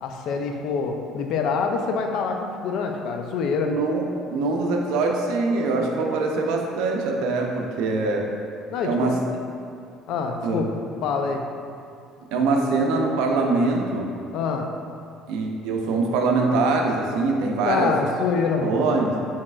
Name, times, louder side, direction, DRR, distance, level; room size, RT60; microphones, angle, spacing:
voice 1, 0.0-3.7 8.7-9.2 10.1-10.6 11.0-11.4 14.3-14.7 17.6-18.8, left 5 dB, 65° left, 4 dB, 0.4 m, -25 dB
voice 2, 3.6-4.0 4.3-8.3 8.8-9.2 10.4-10.6 12.3-14.1 15.3-17.9 18.6-19.2, right 3 dB, 80° right, 1 dB, 0.5 m, -23 dB
4.5 x 4.1 x 2.4 m, 2.4 s
cardioid pair, 135°, 0 cm